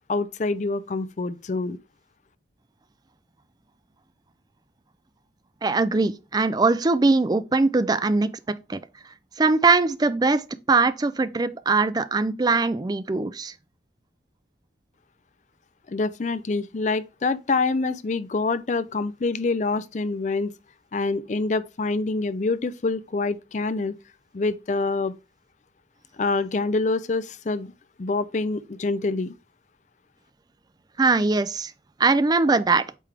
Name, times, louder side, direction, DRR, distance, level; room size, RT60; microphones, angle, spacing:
voice 1, 0.1-1.8 15.9-20.5 20.9-23.9 24.3-25.1 26.2-27.7 28.0-29.3, left 3 dB, 40° left, 0.4 m, -26 dB
voice 2, 5.6-8.8 9.4-13.5 31.0-31.7 32.0-32.8, right 3 dB, 20° right, 0.3 m, -21 dB
8.4 x 3.3 x 3.3 m
head